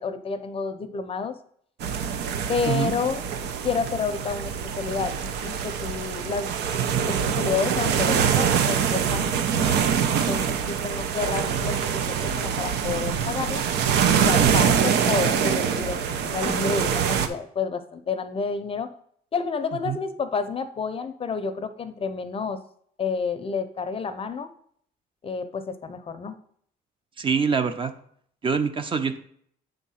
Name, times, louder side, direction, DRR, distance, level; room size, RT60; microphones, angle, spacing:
voice 1, 0.0-1.4 2.5-3.2 3.6-6.5 7.1-13.6 14.2-18.9 19.3-22.6 23.0-24.5 25.2-26.4, left 5 dB, 35° left, 10 dB, 0.6 m, -30 dB
sound 1, 1.8-17.3, right 7 dB, 80° right, 0.8 m, -24 dB
voice 2, 27.2-27.9 28.4-29.2, right 6 dB, 30° right, 9 dB, 0.8 m, -24 dB
7.9 x 3.7 x 5.6 m, 0.63 s
cardioid pair, 110°, 17 cm